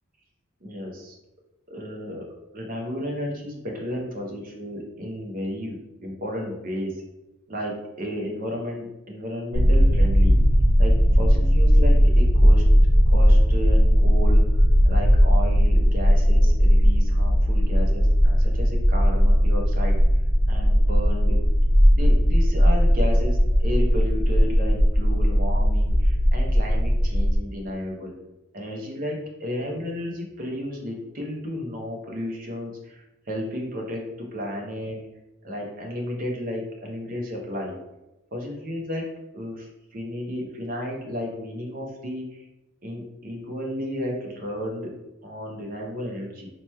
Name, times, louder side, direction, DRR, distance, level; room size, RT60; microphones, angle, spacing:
voice 1, 0.6-1.2 1.7-2.2 2.5-7.0 7.5-10.4 10.8-12.6 13.1-14.4 14.9-20.0 20.5-21.4 21.9-28.1 28.5-35.0 35.4-37.8 38.3-42.5 42.8-45.0 45.2-46.5, left 1 dB, 40° right, 0 dB, 0.7 m, -33 dB
sound 1, 9.5-27.4, equal, 60° left, 0.7 m, -18 dB
3.0 x 2.2 x 4.1 m, 0.98 s
head